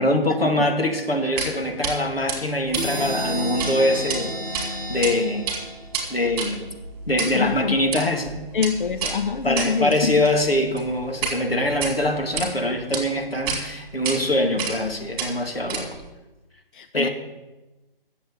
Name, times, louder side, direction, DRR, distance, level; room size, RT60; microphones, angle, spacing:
voice 1, 0.0-5.4 6.1-6.7 7.1-8.4 9.4-15.9 16.9-17.1, left 1 dB, 85° left, 2.4 m, -23 dB
sound 1, 1.4-1.5 1.8-1.9 2.3-3.7 4.0-4.2 4.5-5.1 5.4-11.4 11.7-12.5 12.9-13.0 13.5-13.6 14.0-14.2 14.6-14.9 15.2-16.1, right 5 dB, 25° right, 3.2 m, -30 dB
sound 2, 2.7-6.3, right 1 dB, 10° left, 3.4 m, -31 dB
voice 2, 7.3-7.8 8.5-10.2 16.7-17.1, left 6 dB, 60° left, 0.6 m, -25 dB
11.5 x 7.7 x 8.6 m
figure-of-eight pair, 140°, 29 cm